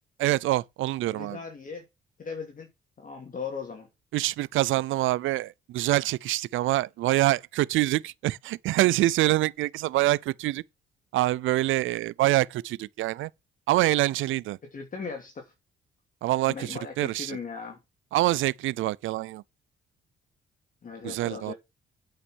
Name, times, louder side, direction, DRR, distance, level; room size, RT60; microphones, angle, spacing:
voice 1, 0.2-1.4 4.1-10.6 11.1-13.3 13.7-14.6 16.2-17.4 18.1-19.4 21.0-21.5, right 16 dB, 80° right, 0.5 m, -25 dB
voice 2, 1.1-1.8 2.2-2.7 3.0-3.9 14.7-15.5 16.5-17.8 20.8-21.5, left 5 dB, 45° left, 2.6 m, -38 dB
8.6 x 5.7 x 6.3 m
cardioid pair, 90°, 20 cm